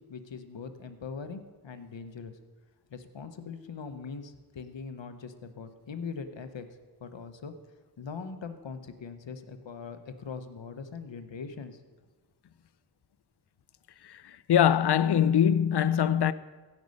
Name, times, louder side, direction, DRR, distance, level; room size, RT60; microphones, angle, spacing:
voice 1, 0.1-2.3 2.9-6.7 7.0-7.5 8.0-11.8, left 5 dB, 80° left, 0.9 m, -41 dB
voice 2, 14.0-16.3, left 9 dB, 65° left, 0.5 m, -23 dB
16.0 x 5.4 x 5.3 m
cardioid pair, 40°, 44 cm